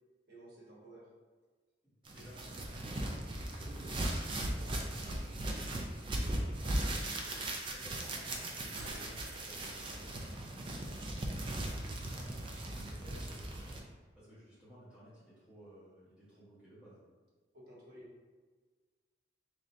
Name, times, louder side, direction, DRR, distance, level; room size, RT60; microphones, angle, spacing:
voice 1, 0.3-1.0 6.9-7.5 17.5-18.1, right 1 dB, 55° right, -5 dB, 1.0 m, -54 dB
voice 2, 2.1-5.4 5.9-6.7 7.7-13.8 14.1-17.0, equal, 5° right, -11 dB, 1.4 m, -56 dB
sound 1, 2.1-13.8, right 1 dB, 25° right, 0.4 m, -38 dB
sound 2, 8.8-11.1 11.4-11.5, right 2 dB, 85° right, 0.5 m, -52 dB
3.7 x 3.1 x 2.7 m, 1.4 s
head